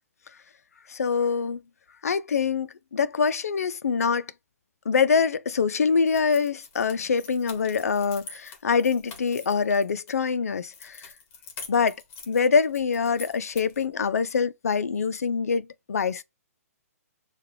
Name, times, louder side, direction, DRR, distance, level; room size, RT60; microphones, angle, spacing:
voice 1, 0.9-1.6 2.0-4.3 4.9-11.1 11.7-12.0 12.3-16.2, left 5 dB, 70° left, 0.5 m, -24 dB
sound 1, 6.1-10.1 10.7-13.9, left 4 dB, 25° left, 1.2 m, -45 dB
6.5 x 2.4 x 3.2 m
figure-of-eight pair, 130°, 9 cm